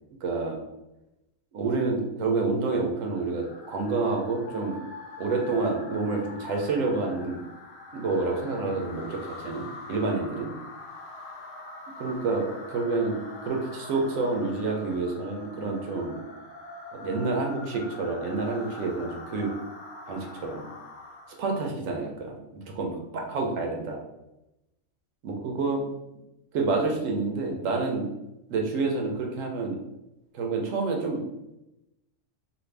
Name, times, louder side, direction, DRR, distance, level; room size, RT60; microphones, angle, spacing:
voice 1, 0.2-0.6 1.5-4.8 5.2-7.4 7.9-10.5 12.0-16.2 16.9-19.5 20.1-20.7 21.4-22.4 22.7-24.0 25.2-25.8 26.5-28.1 28.5-29.8 30.3-31.2, right 3 dB, 90° right, 1 dB, 1.0 m, -28 dB
sound 1, 2.6-21.5, left 2 dB, 70° left, 0.8 m, -44 dB
2.5 x 2.5 x 3.2 m, 0.91 s
omnidirectional pair, 1.3 m